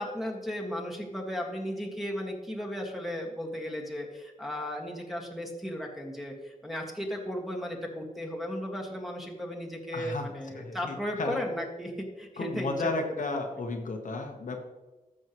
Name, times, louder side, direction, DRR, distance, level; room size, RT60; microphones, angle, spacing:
voice 1, 0.0-13.7, equal, ahead, -2 dB, 1.8 m, -35 dB
voice 2, 9.9-10.3 10.6-11.4 12.4-14.6, left 3 dB, 60° left, 3 dB, 1.2 m, -33 dB
14.0 x 6.4 x 3.1 m, 1.1 s
wide cardioid pair, 100°, 15 cm